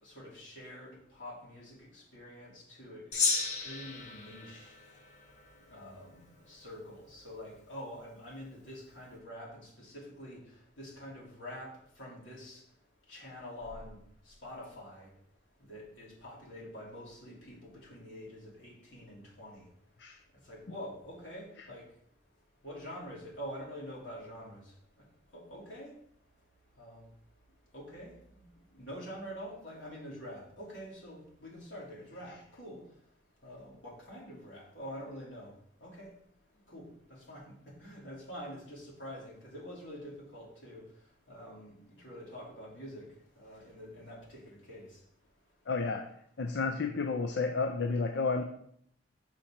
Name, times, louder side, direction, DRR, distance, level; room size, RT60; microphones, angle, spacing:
voice 1, 0.0-4.7 5.7-10.4 10.8-12.6 13.1-14.0 14.3-15.1 15.7-19.6 20.5-21.8 22.6-24.6 25.3-25.9 26.8-27.1 27.7-28.5 28.7-32.8 33.4-35.5 35.8-36.1 36.7-36.8 37.3-37.4 37.8-40.8 41.3-43.0 43.3-44.9, equal, 85° left, -4 dB, 3.1 m, -46 dB
Gong, 3.1-5.8, left 4 dB, 40° left, 1.2 m, -34 dB
voice 2, 45.7-46.1 46.4-48.4, left 4 dB, 65° left, 6 dB, 0.5 m, -31 dB
6.3 x 4.3 x 5.8 m, 0.68 s
head